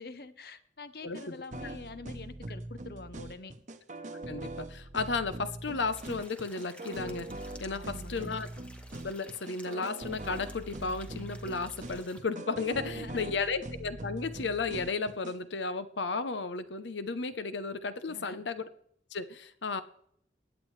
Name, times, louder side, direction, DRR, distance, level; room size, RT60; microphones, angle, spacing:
voice 1, 0.0-3.5 7.7-8.4 12.7-13.5 18.1-18.4, left 3 dB, 55° left, 12 dB, 0.8 m, -46 dB
sound 1, 1.1-15.4, right 2 dB, 40° right, 0.9 m, -42 dB
voice 2, 4.3-7.3 7.6-8.5 9.0-18.7 19.1-19.8, left 4 dB, 90° left, 13 dB, 0.8 m, -34 dB
sound 2, 5.9-12.2, equal, 5° left, 0.9 m, -54 dB
23.0 x 8.4 x 3.3 m, 0.70 s
head